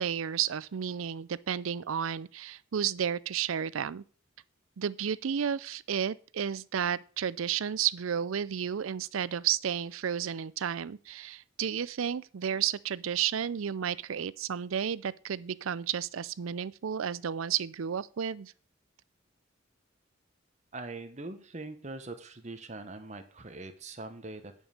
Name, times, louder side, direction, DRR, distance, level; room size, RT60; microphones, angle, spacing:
voice 1, 0.0-4.0 4.8-18.5, right 8 dB, 85° right, 0.5 m, -32 dB
voice 2, 20.7-24.5, right 2 dB, 35° right, 1.1 m, -42 dB
10.0 x 5.5 x 6.4 m
head